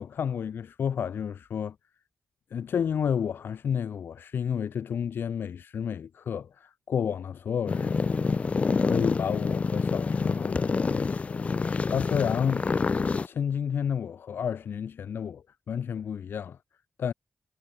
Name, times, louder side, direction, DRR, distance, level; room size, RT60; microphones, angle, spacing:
voice 1, 0.0-1.8 2.5-8.2 8.8-12.7 13.2-16.6 17.0-17.1, left 7 dB, 75° left, 0.6 m, -31 dB
sound 1, 7.7-13.3, left 4 dB, 35° left, 0.3 m, -27 dB
cardioid pair, 90°, 4 cm